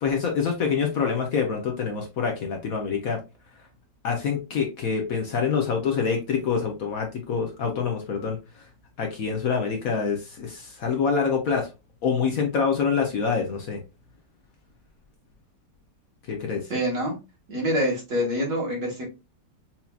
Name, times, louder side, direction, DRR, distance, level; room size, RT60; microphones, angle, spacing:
voice 1, 0.0-3.2 4.0-8.6 9.0-11.7 12.0-13.8 16.3-16.7, left 6 dB, 60° left, 1.1 m, -26 dB
voice 2, 16.7-17.2 17.5-19.0, equal, 45° right, 1.9 m, -26 dB
5.8 x 2.7 x 2.3 m
omnidirectional pair, 1.9 m